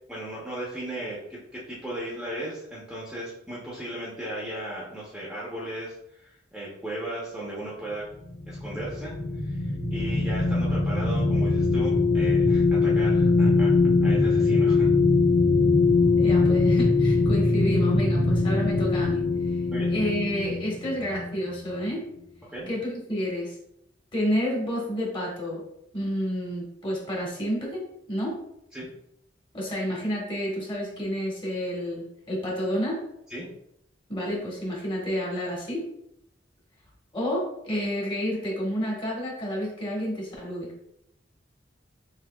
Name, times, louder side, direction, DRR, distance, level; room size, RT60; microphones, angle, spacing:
voice 1, 0.1-8.0 8.5-9.1 9.4-13.7 14.0-14.9 19.7-20.1 22.5-22.7 28.7-28.9 33.3-33.5, right 1 dB, 5° right, -6 dB, 0.8 m, -36 dB
sound 1, 8.2-21.9, left 3 dB, 70° left, 1.3 m, -22 dB
voice 2, 16.2-19.3 19.9-22.0 22.7-23.6 24.1-25.6 25.9-28.4 29.5-33.0 34.1-35.8 37.1-40.7, equal, 30° left, -3 dB, 1.4 m, -30 dB
6.4 x 2.8 x 2.3 m, 0.78 s
head